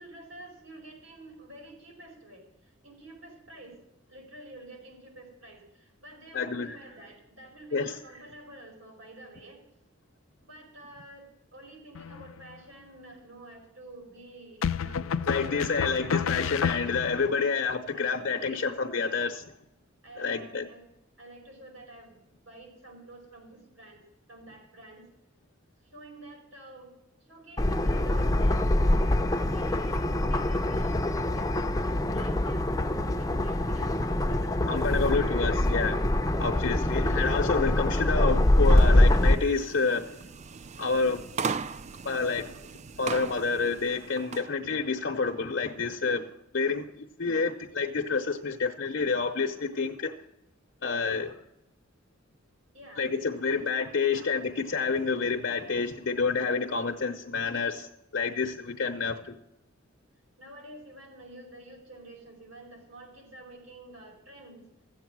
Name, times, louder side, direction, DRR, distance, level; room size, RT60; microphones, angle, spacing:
voice 1, 0.0-3.8 4.1-9.6 10.4-16.6 17.3-17.6 17.9-18.7 19.0-19.3 20.0-20.8 21.2-22.2 22.4-25.1 25.8-26.9 27.2-32.8 33.2-36.0 36.2-36.6 52.7-53.7 54.1-54.4 56.6-57.0 60.4-64.7, right 1 dB, 85° right, 1 dB, 4.9 m, -49 dB
voice 2, 6.3-6.7 7.7-8.0 15.3-19.4 20.2-20.7 34.7-36.0 36.4-40.2 40.8-41.2 42.0-42.5 43.0-50.1 50.8-51.4 53.0-59.4, left 4 dB, 60° left, 2 dB, 0.8 m, -28 dB
sound 1, 11.9-12.5 14.6-17.3, left 7 dB, 90° left, 0.4 m, -30 dB
sound 2, 27.6-39.3, left 1 dB, 15° left, 0.6 m, -24 dB
sound 3, 38.6-44.5, right 5 dB, 35° right, 0.4 m, -38 dB
14.5 x 8.0 x 6.1 m, 0.85 s
head